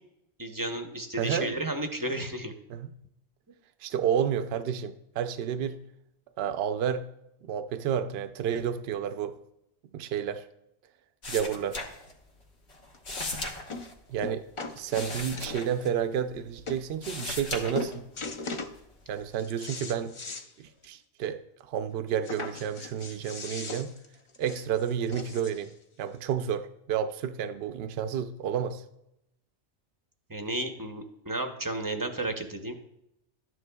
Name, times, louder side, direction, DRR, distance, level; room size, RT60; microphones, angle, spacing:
voice 1, 0.4-2.5 30.3-32.7, right 1 dB, 20° right, 0.6 m, -33 dB
voice 2, 1.2-1.6 2.7-2.9 3.8-5.8 6.4-7.1 7.5-9.4 9.9-10.5 11.3-11.8 14.1-14.4 14.8-18.1 19.1-20.1 20.6-23.9 24.4-25.7 26.0-28.8, right 8 dB, 65° right, 0.8 m, -30 dB
sound 1, 11.2-12.4 12.7-16.5 16.8-18.3 18.7-19.3, left 2 dB, 70° left, 1.5 m, -38 dB
sound 2, 12.9-13.0 13.7-13.9 14.2-15.8 16.4-16.5 16.7-16.8 17.2-17.5 17.7-18.8 19.2-20.5 20.8-20.9 21.2-21.3 22.2-25.7 26.5-26.6, left 3 dB, 40° left, 0.5 m, -39 dB
12.5 x 9.6 x 2.3 m
omnidirectional pair, 1.2 m